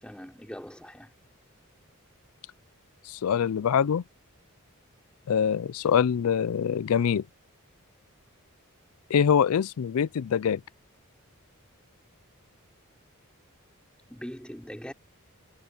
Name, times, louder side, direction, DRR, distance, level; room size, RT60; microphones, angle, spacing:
voice 1, 0.0-1.1 14.1-14.9, equal, 5° left, 4.3 m, -41 dB
voice 2, 3.1-4.0 5.3-7.2 9.1-10.6, left 7 dB, 80° left, 0.4 m, -24 dB
head